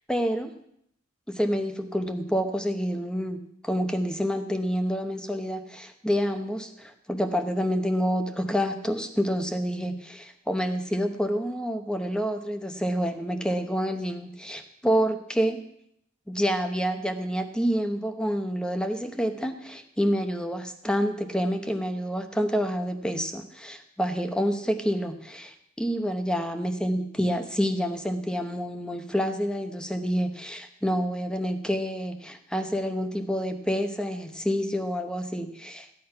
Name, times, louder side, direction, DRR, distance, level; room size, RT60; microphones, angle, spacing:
voice 1, 0.1-0.5 1.3-3.4 3.6-15.6 16.3-35.9, equal, 5° left, 7 dB, 0.8 m, -28 dB
14.5 x 8.8 x 5.7 m, 0.73 s
head